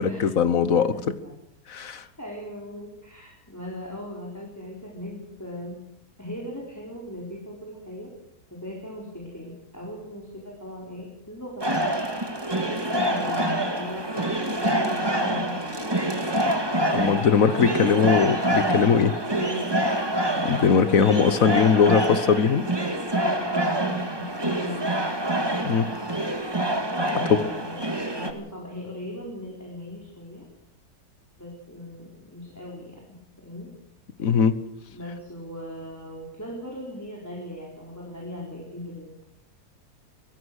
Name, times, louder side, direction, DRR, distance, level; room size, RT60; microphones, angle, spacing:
voice 1, 0.0-0.9 1.7-2.0 16.9-19.1 20.4-22.6 25.6-25.9 34.2-34.6, left 6 dB, 60° left, 14 dB, 1.4 m, -20 dB
voice 2, 0.7-1.3 1.8-5.8 6.2-8.2 8.5-11.7 13.0-16.5 17.7-18.2 19.3-19.8 23.1-24.9 27.1-30.5 31.4-33.7 34.9-39.1, left 1 dB, 10° left, -2 dB, 4.3 m, -38 dB
sound 1, 11.6-28.3, right 1 dB, 15° right, 1.9 m, -26 dB
24.0 x 17.0 x 6.5 m, 0.74 s
omnidirectional pair, 1.7 m